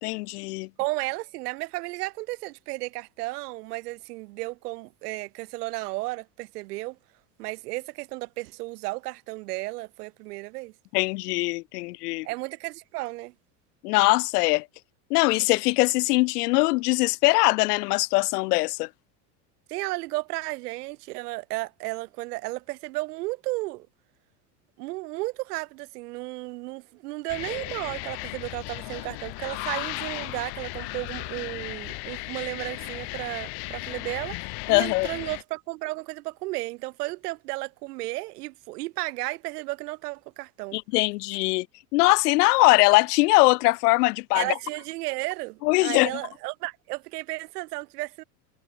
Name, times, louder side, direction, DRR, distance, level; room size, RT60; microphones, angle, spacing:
voice 1, 0.0-0.7 10.9-12.3 13.8-14.7 15.1-18.9 34.7-35.1 40.7-41.7 41.9-44.5 45.6-46.1, left 23 dB, 85° left, 0.6 m, -21 dB
voice 2, 0.8-7.0 7.4-10.7 12.2-13.3 19.7-23.9 24.8-40.8 44.3-48.2, right 21 dB, 85° right, 0.8 m, -33 dB
sound 1, 27.3-35.4, left 30 dB, 55° left, 1.1 m, -36 dB
supercardioid pair, 125°, 46 cm